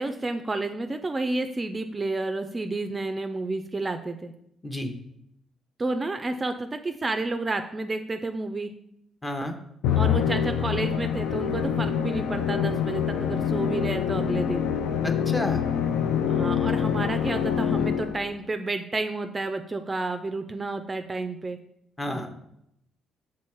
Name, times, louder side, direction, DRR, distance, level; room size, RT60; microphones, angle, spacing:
voice 1, 0.0-4.3 5.8-8.7 10.0-14.7 16.3-21.6, right 2 dB, 25° right, 8 dB, 0.4 m, -30 dB
voice 2, 9.2-9.6 15.0-15.6 22.0-22.5, left 1 dB, 20° left, 5 dB, 0.8 m, -31 dB
Musical instrument, 9.8-18.3, left 8 dB, 85° left, 0.4 m, -25 dB
6.2 x 3.6 x 4.4 m, 0.77 s
cardioid pair, 90°, 0 cm